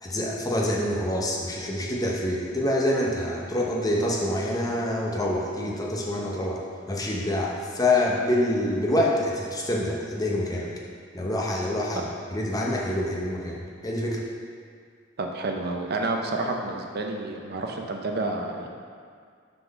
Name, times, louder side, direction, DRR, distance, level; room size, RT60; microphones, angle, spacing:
voice 1, 0.0-6.6 6.9-10.7 11.1-14.2, left 1 dB, 20° left, -2 dB, 0.7 m, -26 dB
voice 2, 15.2-18.7, right 2 dB, 55° right, 2 dB, 0.6 m, -29 dB
5.8 x 3.9 x 5.2 m, 2.1 s
head